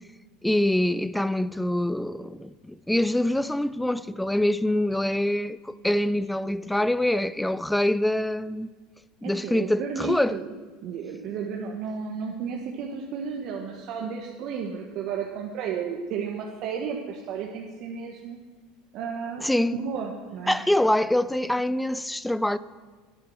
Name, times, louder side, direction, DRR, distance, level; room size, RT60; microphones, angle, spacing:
voice 1, 0.4-8.7 9.2-10.4 19.4-19.7 20.5-22.6, left 1 dB, 5° left, 0.4 m, -25 dB
voice 2, 9.2-10.5 10.8-18.5 18.9-19.5 19.7-20.7, right 6 dB, 55° right, 1.1 m, -33 dB
9.8 x 8.7 x 6.2 m
supercardioid pair, 100°, 0 cm